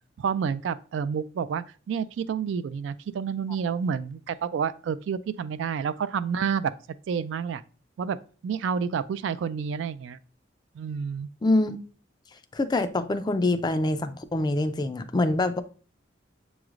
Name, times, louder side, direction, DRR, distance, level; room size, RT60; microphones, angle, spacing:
voice 1, 0.2-6.7 7.1-7.6 8.0-8.2 8.4-10.2 10.8-11.3, right 6 dB, 70° right, 0.3 m, -29 dB
voice 2, 11.4-11.8 12.5-15.6, left 2 dB, 20° left, 0.3 m, -25 dB
6.9 x 3.1 x 2.4 m
head